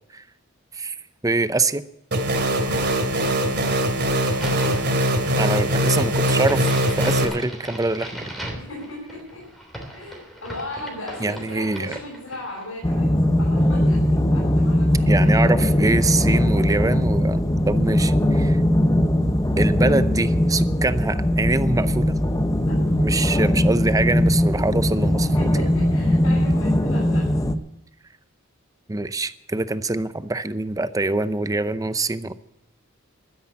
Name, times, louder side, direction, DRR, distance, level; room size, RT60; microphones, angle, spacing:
voice 1, 1.2-1.8 5.4-6.7 7.0-8.2 11.2-11.9 15.1-18.6 19.6-22.2 23.0-25.5 28.9-32.3, right 2 dB, 15° right, 13 dB, 0.6 m, -24 dB
sound 1, 2.1-7.2, right 1 dB, 55° right, 2.7 m, -21 dB
voice 2, 2.5-3.6 8.5-9.5 9.9-15.5 22.6-22.8 24.9-27.3, left 1 dB, 80° left, -3 dB, 5.9 m, -37 dB
Crack, 4.2-12.7, right 1 dB, ahead, 3.2 m, -38 dB
sound 2, 12.8-27.5, left 1 dB, 15° left, 0.9 m, -20 dB
12.5 x 10.0 x 8.6 m, 0.84 s
head